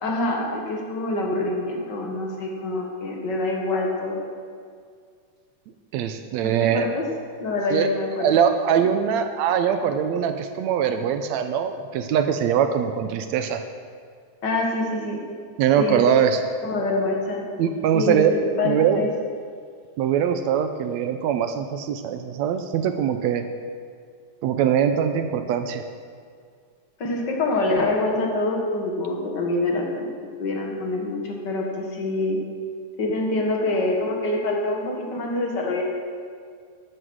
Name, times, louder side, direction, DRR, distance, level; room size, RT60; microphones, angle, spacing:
voice 1, 0.0-4.2 6.4-7.0 7.4-8.3 14.4-15.2 15.8-16.0 16.6-17.4 17.9-19.1 27.0-30.1 30.4-32.4 33.0-35.8, left 2 dB, 40° left, 0 dB, 1.7 m, -25 dB
voice 2, 5.9-6.9 7.7-7.9 8.2-13.6 15.6-16.4 17.6-18.3 18.6-19.1 20.0-23.4 24.4-25.8, right 8 dB, 80° right, 8 dB, 1.7 m, -22 dB
12.5 x 10.0 x 6.3 m, 2.1 s
omnidirectional pair, 3.7 m